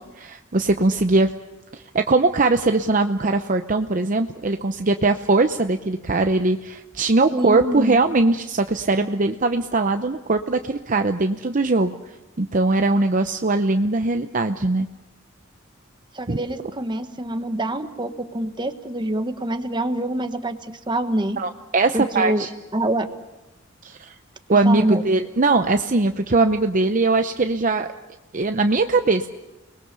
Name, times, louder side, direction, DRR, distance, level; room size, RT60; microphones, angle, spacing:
voice 1, 0.0-1.3 1.7-12.0 12.4-14.9 16.3-16.4 21.4-22.5 23.8-24.1 24.5-27.9 28.3-29.3, right 3 dB, 40° right, 7 dB, 0.8 m, -20 dB
voice 2, 7.3-8.0 16.1-20.6 20.9-21.4 21.9-22.5 22.7-23.1 24.6-25.0, right 1 dB, 25° right, 8 dB, 1.4 m, -25 dB
30.0 x 21.0 x 6.9 m, 1.0 s
head